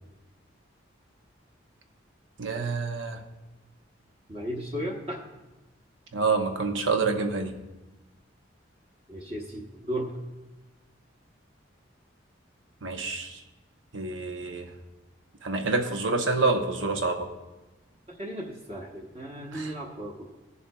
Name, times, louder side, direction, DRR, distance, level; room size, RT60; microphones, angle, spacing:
voice 1, 2.4-3.2 6.1-7.6 12.8-13.4 13.9-14.7 15.4-17.3 19.4-19.7, right 3 dB, 75° right, 5 dB, 1.0 m, -27 dB
voice 2, 4.3-5.2 9.1-10.1 18.1-20.4, equal, 30° right, -2 dB, 1.0 m, -35 dB
20.0 x 7.0 x 2.3 m, 1.1 s
head